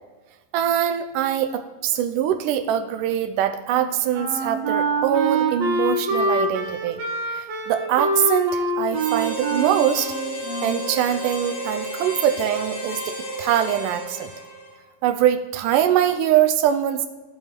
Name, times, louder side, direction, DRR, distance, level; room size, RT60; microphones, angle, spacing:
voice 1, 0.5-7.0 7.3-10.1 10.6-14.3 15.0-17.1, right 10 dB, 85° right, 8 dB, 2.2 m, -23 dB
Wind instrument woodwind instrument, 3.7-11.0, right 2 dB, 65° right, 2.4 m, -25 dB
Harmonica, 8.9-14.9, equal, 50° left, 3.0 m, -32 dB
16.0 x 5.5 x 4.5 m, 1.2 s
omnidirectional pair, 3.7 m